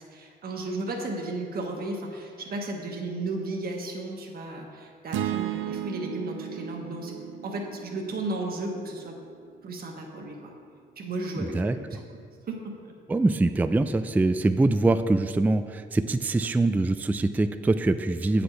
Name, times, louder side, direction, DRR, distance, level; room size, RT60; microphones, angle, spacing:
voice 1, 0.1-7.2 7.4-9.2 9.6-10.5 11.0-11.9 12.5-12.9, right 2 dB, 50° right, 1 dB, 1.3 m, -34 dB
sound 1, 5.1-9.4, right 12 dB, 85° right, 0.4 m, -35 dB
voice 2, 11.4-11.8 13.1-18.4, right 2 dB, 10° right, 10 dB, 0.3 m, -24 dB
8.2 x 5.1 x 5.9 m, 2.2 s
cardioid pair, 90°, 20 cm